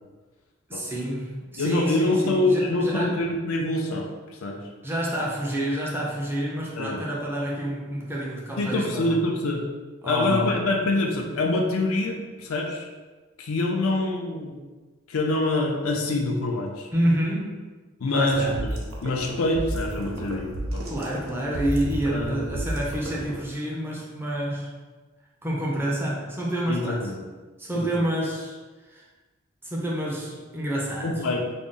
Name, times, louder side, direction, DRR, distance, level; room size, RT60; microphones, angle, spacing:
voice 1, 0.7-3.2 4.8-9.2 10.0-10.6 16.9-17.6 18.1-18.6 20.9-24.7 25.4-27.1 27.6-28.5 28.9-29.0 29.6-31.1, right 1 dB, 10° right, -4 dB, 0.6 m, -28 dB
voice 2, 1.6-4.1 4.4-4.6 6.8-7.0 8.6-9.6 10.0-12.9 13.4-14.6 15.1-16.9 18.0-18.8 19.0-20.8 22.1-22.7 26.7-27.3 27.8-28.1 31.0-31.5, left 2 dB, 80° left, 2 dB, 0.5 m, -25 dB
sound 1, 18.3-23.4, right 1 dB, 70° right, 0.6 m, -32 dB
3.8 x 2.1 x 3.7 m, 1.3 s
head